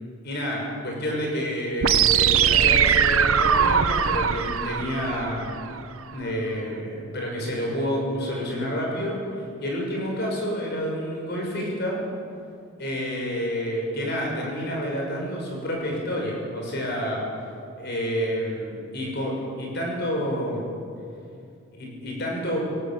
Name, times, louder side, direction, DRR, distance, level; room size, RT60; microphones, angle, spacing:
voice 1, 0.2-5.5 6.1-9.2 9.6-12.0 12.8-17.3 17.8-20.6 21.7-22.7, equal, 50° left, 0 dB, 6.1 m, -29 dB
sound 1, 1.8-5.8, right 7 dB, 80° right, 1.0 m, -21 dB
19.5 x 17.5 x 8.6 m, 2.5 s
head